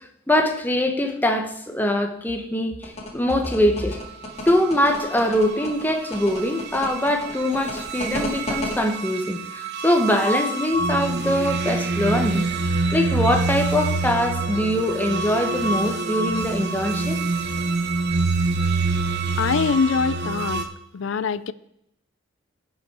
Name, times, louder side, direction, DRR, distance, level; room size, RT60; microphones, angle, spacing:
voice 1, 0.3-4.0 4.5-12.4 12.9-17.2, left 1 dB, 10° left, 1.0 m, -23 dB
sound 1, 2.8-8.7, left 1 dB, 30° left, 1.9 m, -32 dB
sound 2, 4.5-20.6, right 3 dB, 55° right, 0.9 m, -26 dB
voice 2, 19.4-20.7 20.9-21.5, left 5 dB, 65° left, 0.4 m, -23 dB
16.0 x 5.5 x 4.7 m
head